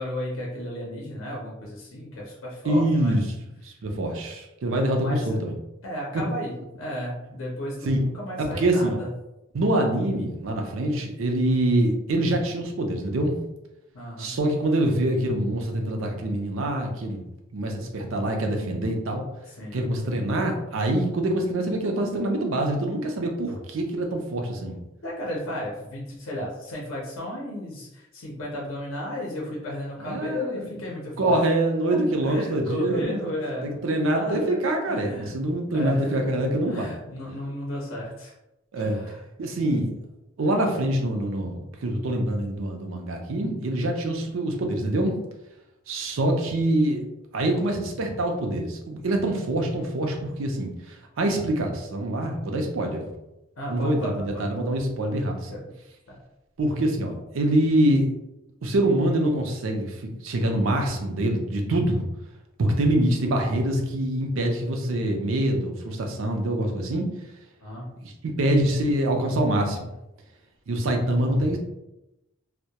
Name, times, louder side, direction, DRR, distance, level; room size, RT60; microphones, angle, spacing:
voice 1, 0.0-3.2 4.9-5.4 5.8-9.1 13.9-14.3 19.5-19.8 25.0-31.4 31.9-35.4 35.7-36.3 36.7-38.3 38.8-39.2 53.6-54.6 55.5-55.6 56.1-56.2 67.6-67.9, left 1 dB, 75° left, -3 dB, 0.6 m, -34 dB
voice 2, 2.6-3.2 3.6-5.5 6.1-6.2 7.8-8.0 8.4-9.0 9.5-13.4 14.2-17.2 17.5-19.3 19.7-24.8 30.0-30.7 31.2-33.3 33.6-36.9 38.7-39.0 39.4-39.9 40.4-45.2 45.9-47.0 47.3-53.1 53.7-55.6 56.6-58.1 58.6-62.0 62.6-67.1 68.0-69.9 70.7-71.6, right 1 dB, 80° right, 2 dB, 0.5 m, -25 dB
2.2 x 2.1 x 2.8 m, 0.92 s
head